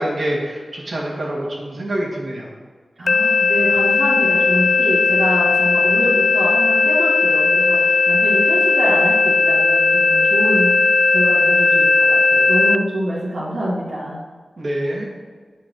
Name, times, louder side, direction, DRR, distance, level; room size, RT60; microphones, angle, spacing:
voice 1, 0.0-2.5 14.6-15.1, right 1 dB, 70° right, -3 dB, 2.3 m, -25 dB
voice 2, 3.0-10.8 11.1-14.2, equal, 90° right, -8 dB, 1.8 m, -25 dB
sound 1, 3.1-12.8, left 3 dB, 70° left, 0.3 m, -16 dB
10.0 x 4.5 x 6.5 m, 1.5 s
cardioid pair, 45°, 0 cm